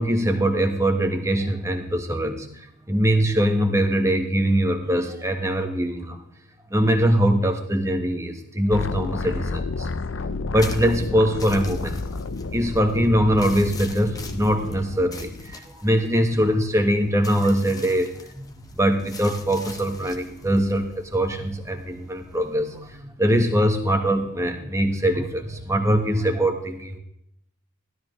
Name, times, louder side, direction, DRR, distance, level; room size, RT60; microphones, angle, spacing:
voice 1, 0.0-6.2 6.7-12.2 12.5-27.0, equal, 15° right, 5 dB, 1.2 m, -22 dB
sound 1, 8.7-15.5, left 3 dB, 60° left, 0.6 m, -31 dB
sound 2, 10.6-23.0, left 3 dB, 15° left, 1.0 m, -44 dB
15.0 x 13.0 x 3.2 m, 0.74 s
head